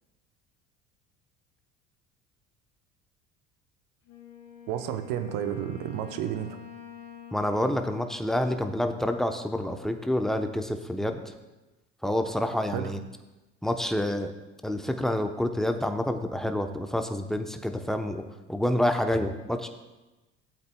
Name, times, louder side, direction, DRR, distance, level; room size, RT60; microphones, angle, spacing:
Wind instrument woodwind instrument, 4.1-9.5, left 8 dB, 55° left, 2.2 m, -47 dB
voice 1, 4.7-6.6 12.7-12.9, right 10 dB, 60° right, 8 dB, 0.9 m, -31 dB
voice 2, 7.3-11.2 12.0-13.0 13.6-14.3 14.6-18.2 18.5-19.7, left 1 dB, ahead, 6 dB, 0.9 m, -28 dB
15.5 x 8.0 x 2.3 m, 1.1 s
hypercardioid pair, 60°, 37 cm